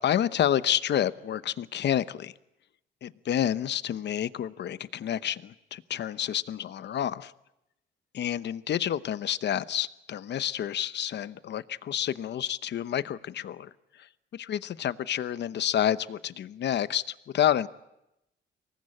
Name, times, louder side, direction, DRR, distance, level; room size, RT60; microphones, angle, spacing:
voice 1, 0.0-2.3 3.0-7.3 8.2-13.7 14.0-17.7, left 10 dB, 60° left, 15 dB, 0.9 m, -29 dB
24.5 x 19.5 x 9.9 m, 0.89 s
cardioid pair, 90°, 20 cm